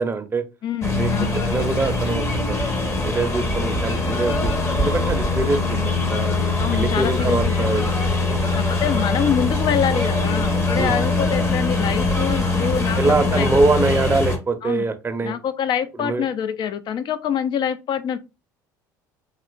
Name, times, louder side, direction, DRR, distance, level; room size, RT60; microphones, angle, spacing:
voice 1, 0.0-0.4 1.0-1.1 1.5-6.3 6.7-7.9 8.2-8.5 10.8-11.5 13.0-15.3 16.0-16.2, right 3 dB, 20° right, 0.6 m, -24 dB
voice 2, 0.6-1.4 6.6-7.7 8.5-13.5 14.6-14.9 15.2-18.2, left 8 dB, 45° left, 0.5 m, -25 dB
sound 1, 0.8-14.4, left 2 dB, 25° left, 0.9 m, -22 dB
3.1 x 2.8 x 2.5 m
hypercardioid pair, 75°, 10 cm